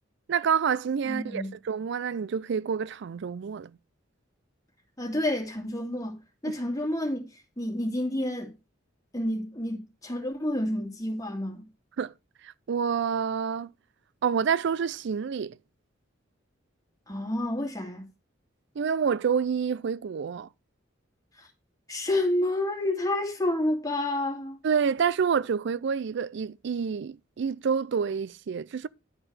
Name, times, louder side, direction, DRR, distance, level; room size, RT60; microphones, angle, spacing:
voice 1, 0.3-3.7 12.0-12.1 12.4-13.7 14.2-15.6 18.8-20.5 24.6-28.9, right 6 dB, 60° right, 0.4 m, -28 dB
voice 2, 1.0-1.5 5.0-6.2 6.4-7.3 7.6-8.5 9.1-11.7 17.1-18.1 21.4-21.5 21.9-24.6, left 1 dB, 20° left, 2.3 m, -29 dB
11.0 x 4.5 x 4.9 m
head